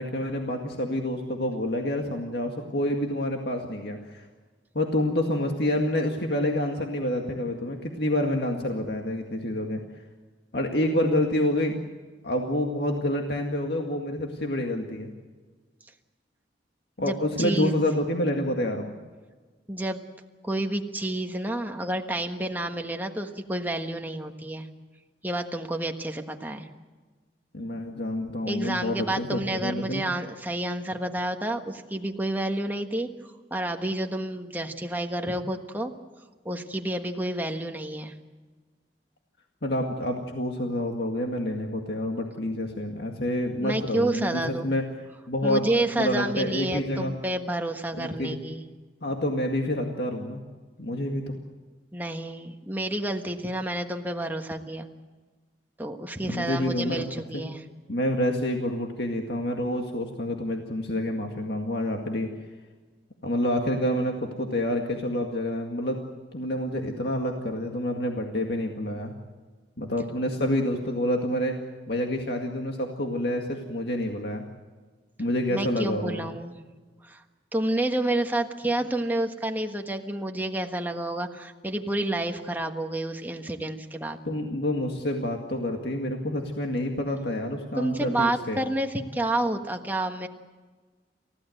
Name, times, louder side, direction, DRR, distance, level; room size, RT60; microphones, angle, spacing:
voice 1, 0.0-4.3 4.7-9.8 10.5-11.8 12.2-15.1 17.0-18.9 27.5-30.0 39.6-44.8 45.3-47.1 47.9-48.4 49.0-50.4 50.8-51.3 56.2-57.0 57.3-57.4 57.9-62.3 63.2-66.0 66.3-69.1 69.8-71.6 71.9-74.4 75.2-76.3 84.3-88.6, left 1 dB, 60° left, 2 dB, 2.0 m, -28 dB
voice 2, 17.0-17.7 19.7-20.1 20.4-24.7 25.2-26.7 28.5-33.1 33.5-35.9 36.4-38.1 43.6-44.7 45.4-48.6 51.9-54.9 55.8-57.6 75.5-76.6 77.0-77.2 77.5-84.2 87.7-90.3, right 1 dB, 10° right, 4 dB, 1.4 m, -29 dB
29.0 x 15.5 x 7.9 m, 1.4 s
head